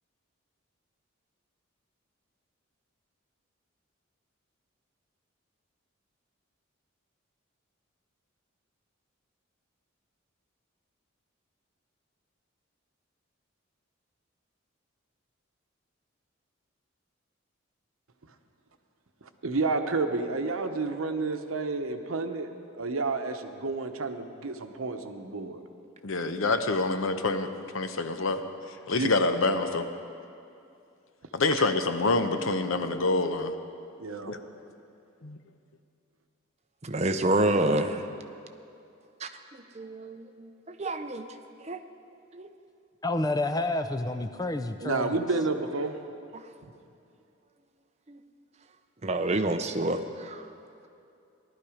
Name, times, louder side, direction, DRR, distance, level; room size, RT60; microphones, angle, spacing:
voice 1, 19.4-25.6 28.9-29.1 34.0-34.3 44.8-46.0, right 3 dB, 85° right, 7 dB, 0.9 m, -30 dB
voice 2, 26.0-27.5 27.7-28.4 28.9-29.9 31.3-33.5 34.3-34.4 35.2-35.4, left 3 dB, 75° left, 8 dB, 0.8 m, -26 dB
voice 3, 36.8-38.1 39.2-41.3 41.6-41.8 42.3-42.5 46.3-46.5 48.1-48.2 49.0-50.5, right 2 dB, 30° right, 7 dB, 0.6 m, -29 dB
voice 4, 43.0-45.1, left 2 dB, 20° left, 8 dB, 0.5 m, -29 dB
17.0 x 12.0 x 5.0 m, 2.6 s
head